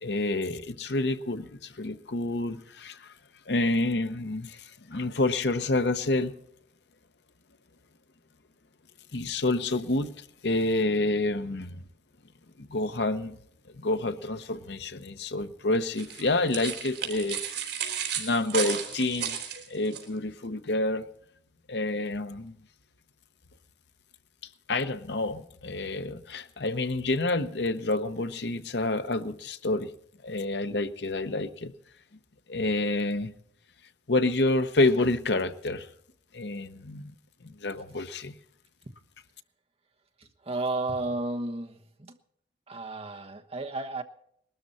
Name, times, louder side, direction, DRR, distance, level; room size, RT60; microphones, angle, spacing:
voice 1, 0.0-3.1 3.5-6.3 9.1-11.8 12.6-13.4 13.8-17.4 18.2-19.4 19.7-21.1 21.7-22.6 24.7-29.9 30.2-31.7 32.5-33.3 34.1-35.9 36.3-37.1 37.4-38.3, left 2 dB, 70° left, 10 dB, 0.9 m, -28 dB
sound 1, 16.0-20.0, right 7 dB, 75° right, 3.6 m, -33 dB
voice 2, 40.5-42.1 42.7-44.0, right 2 dB, 35° right, 5 dB, 1.2 m, -32 dB
20.0 x 13.0 x 4.2 m, 0.69 s
head